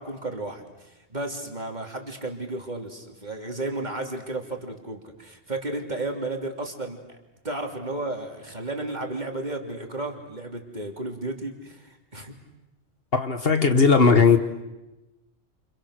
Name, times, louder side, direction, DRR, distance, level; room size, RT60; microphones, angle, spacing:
voice 1, 0.0-7.0 7.4-12.3, right 2 dB, 35° right, 3.2 m, -33 dB
voice 2, 13.1-14.4, left 5 dB, 50° left, 1.6 m, -17 dB
29.5 x 29.0 x 6.6 m
omnidirectional pair, 1.3 m